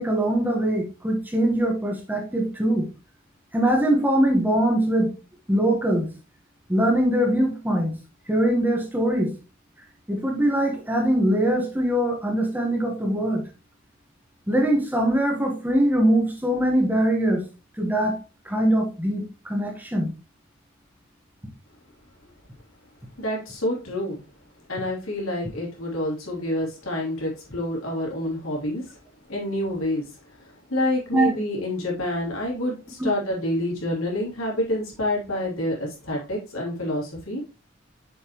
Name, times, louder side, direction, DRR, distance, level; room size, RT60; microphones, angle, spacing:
voice 1, 0.0-2.8 3.5-5.1 5.5-6.1 6.7-8.0 8.3-9.3 10.1-13.4 14.5-17.4 17.8-18.2 18.4-20.1 31.1-31.3, right 1 dB, 10° right, 1 dB, 1.3 m, -22 dB
voice 2, 23.2-24.2 24.7-28.9 29.3-30.1 30.4-37.4, left 1 dB, 85° left, -3 dB, 3.1 m, -28 dB
6.9 x 5.7 x 3.0 m, 0.31 s
head